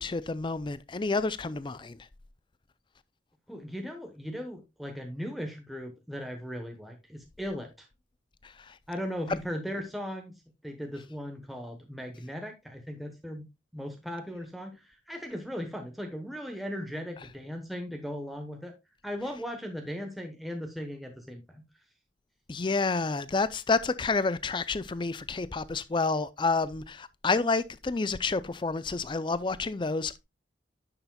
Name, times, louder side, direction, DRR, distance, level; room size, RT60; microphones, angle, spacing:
voice 1, 0.0-2.0 8.4-8.8 9.3-9.4 22.5-30.2, left 3 dB, 25° left, 0.4 m, -29 dB
voice 2, 3.5-7.9 8.9-13.5 13.7-18.7 19.0-21.6, equal, ahead, 1.0 m, -38 dB
9.9 x 6.9 x 2.3 m
head